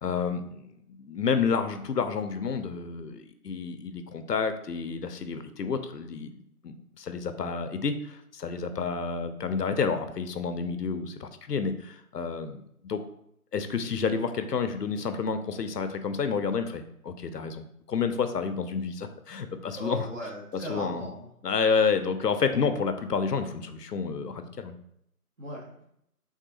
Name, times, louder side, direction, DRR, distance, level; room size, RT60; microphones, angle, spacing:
voice 1, 0.0-13.0 13.5-20.1 20.7-21.1 21.4-24.8, left 5 dB, 90° left, 9 dB, 0.6 m, -30 dB
voice 2, 19.7-21.3 21.7-21.9 25.4-25.8, right 1 dB, 50° right, -3 dB, 1.1 m, -38 dB
3.5 x 2.7 x 2.7 m, 0.73 s
figure-of-eight pair, 160°, 47 cm